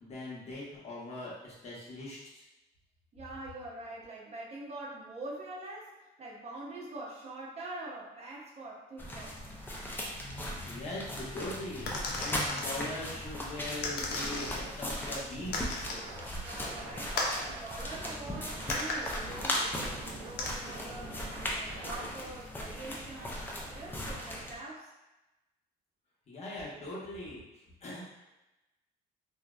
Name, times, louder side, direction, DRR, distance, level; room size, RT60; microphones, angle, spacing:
voice 1, 0.0-2.4 10.6-15.5 26.3-27.4 27.8-28.1, left 1 dB, 40° left, -5 dB, 0.8 m, -41 dB
voice 2, 3.1-9.4 16.4-21.2 21.5-24.9, right 2 dB, 40° right, -5 dB, 0.7 m, -44 dB
sound 1, 9.0-24.5, left 1 dB, 10° left, 0.4 m, -38 dB
sound 2, 11.9-12.7 13.8-14.7 15.5-16.1 17.2-17.4 18.7-19.2 20.4-20.5, left 3 dB, 75° left, 0.5 m, -35 dB
Scratching (performance technique), 14.3-14.7 15.0-17.6 17.9-22.1, right 2 dB, 85° right, 0.5 m, -46 dB
2.6 x 2.0 x 2.3 m, 1.0 s
cardioid pair, 110°, 17 cm